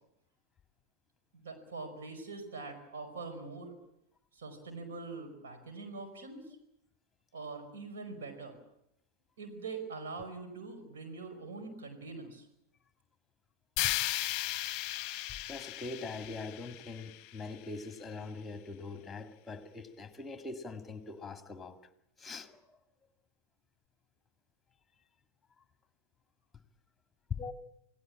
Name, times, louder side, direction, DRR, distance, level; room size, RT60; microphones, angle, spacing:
voice 1, 1.3-3.7 4.3-6.5 7.3-8.5 9.4-12.5, right 4 dB, 60° right, 5.0 m, -43 dB
sound 1, 13.8-17.8, left 15 dB, 40° left, 0.9 m, -36 dB
voice 2, 15.5-21.8 22.2-22.8 27.3-27.5, left 4 dB, 10° left, 2.1 m, -42 dB
28.0 x 18.0 x 8.8 m
figure-of-eight pair, 90°, 0 cm